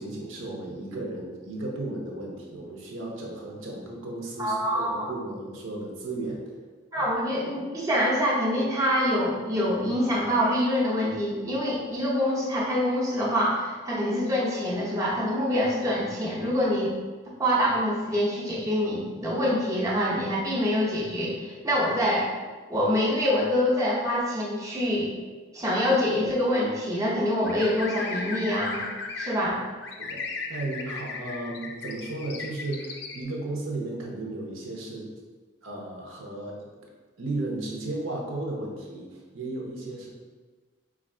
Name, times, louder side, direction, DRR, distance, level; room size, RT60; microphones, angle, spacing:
voice 1, 0.0-6.4 7.0-7.1 30.0-35.1 35.6-36.6 37.2-40.1, right 2 dB, 75° right, -1 dB, 0.8 m, -34 dB
voice 2, 4.4-5.1 6.9-16.9 17.4-22.3 22.7-25.1 25.5-28.8 29.2-29.6, equal, 15° right, -6 dB, 0.7 m, -25 dB
sound 1, 27.5-29.3 29.8-33.2, left 4 dB, 55° left, 0.5 m, -35 dB
4.1 x 2.5 x 4.2 m, 1.4 s
head